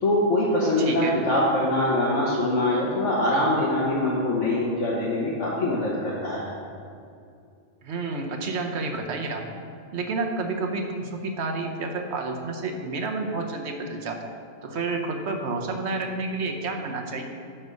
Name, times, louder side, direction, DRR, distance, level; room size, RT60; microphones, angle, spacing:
voice 1, 0.0-6.5, left 1 dB, 80° left, -6 dB, 1.5 m, -23 dB
voice 2, 0.8-1.2 7.8-9.6 9.9-14.2 14.6-17.2, right 3 dB, 65° right, 3 dB, 1.2 m, -30 dB
10.0 x 4.4 x 6.4 m, 2.4 s
omnidirectional pair, 1.3 m